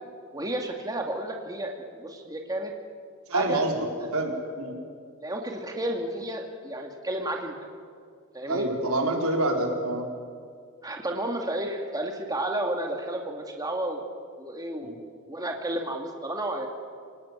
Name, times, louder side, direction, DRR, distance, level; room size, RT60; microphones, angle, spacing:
voice 1, 0.3-2.7 3.3-3.6 4.0-4.1 5.2-7.5 8.3-8.7 10.8-14.0 14.4-16.7, right 1 dB, 20° right, 2 dB, 2.3 m, -32 dB
voice 2, 3.3-4.7 8.5-10.0 14.8-15.0, right 1 dB, 80° right, 1 dB, 4.7 m, -27 dB
27.0 x 19.0 x 9.6 m, 2.2 s
head